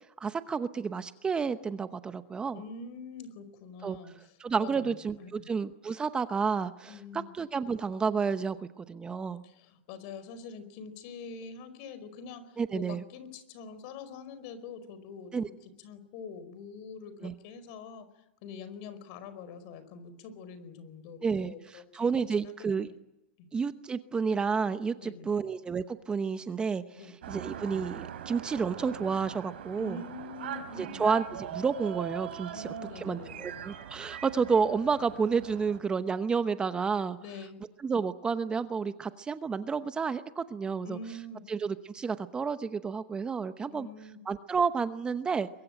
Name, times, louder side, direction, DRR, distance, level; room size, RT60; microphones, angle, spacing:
voice 1, 0.2-2.6 3.8-4.0 4.4-9.4 12.6-13.0 15.3-15.5 17.2-17.3 21.2-22.9 23.5-27.0 27.3-30.0 30.8-37.2 37.8-41.0 41.5-43.9 44.3-45.5, right 5 dB, 15° right, 11 dB, 0.9 m, -30 dB
voice 2, 2.5-5.5 6.9-7.3 9.4-18.0 18.4-22.1 22.4-22.9 23.4-23.5 25.0-25.4 26.9-27.1 29.8-31.1 32.5-33.7 37.2-37.5 40.8-41.4 43.7-44.2, left 4 dB, 50° left, 13 dB, 4.8 m, -45 dB
sound 1, 27.2-35.8, right 9 dB, 80° right, 3.9 m, -41 dB
23.5 x 23.0 x 9.1 m, 0.94 s
hypercardioid pair, 135°, 6 cm